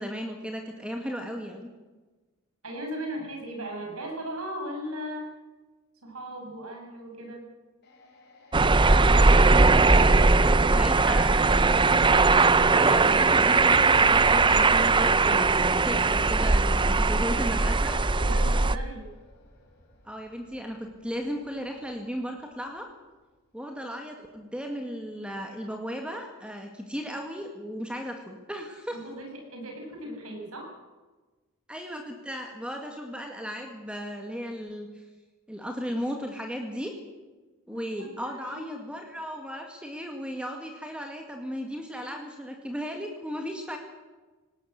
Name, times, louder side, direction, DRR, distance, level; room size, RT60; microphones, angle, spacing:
voice 1, 0.0-1.7 8.8-10.2 10.7-11.7 12.7-18.0 20.0-22.9 23.5-29.0 31.7-35.0 35.5-36.9 37.7-43.8, equal, 5° right, 3 dB, 1.9 m, -35 dB
voice 2, 2.6-5.3 6.0-7.5 18.2-19.1 28.9-30.7 37.7-38.7, right 1 dB, 85° right, 2 dB, 7.3 m, -37 dB
sound 1, 7.8-22.2 22.5-22.7, left 2 dB, 50° left, 5.5 m, -46 dB
sound 2, 8.5-18.8, right 3 dB, 20° right, 0.6 m, -20 dB
19.0 x 18.5 x 8.2 m, 1.2 s
head